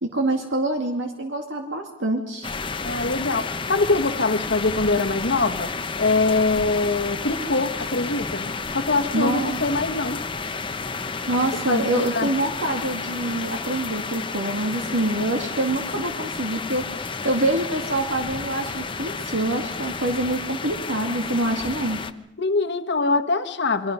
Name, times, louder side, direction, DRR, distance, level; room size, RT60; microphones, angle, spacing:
voice 1, 0.0-2.5 9.1-9.6 11.3-22.0, right 1 dB, 70° right, 3 dB, 2.4 m, -26 dB
sound 1, 2.4-22.1, left 4 dB, 25° left, 0.8 m, -31 dB
voice 2, 2.8-5.7 6.0-10.2 11.7-12.3 22.4-23.9, left 3 dB, 60° left, 7 dB, 1.2 m, -23 dB
29.5 x 22.5 x 5.5 m, 0.83 s
head